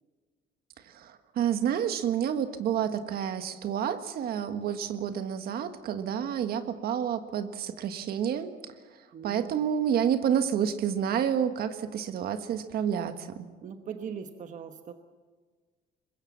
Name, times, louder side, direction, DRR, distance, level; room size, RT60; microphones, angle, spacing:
voice 1, 0.9-8.5 9.2-13.5, right 8 dB, 65° right, 9 dB, 1.5 m, -29 dB
voice 2, 9.1-9.6 13.6-14.9, right 7 dB, 50° right, 7 dB, 1.2 m, -40 dB
23.0 x 21.0 x 7.3 m, 1.4 s
cardioid pair, 110°, 17 cm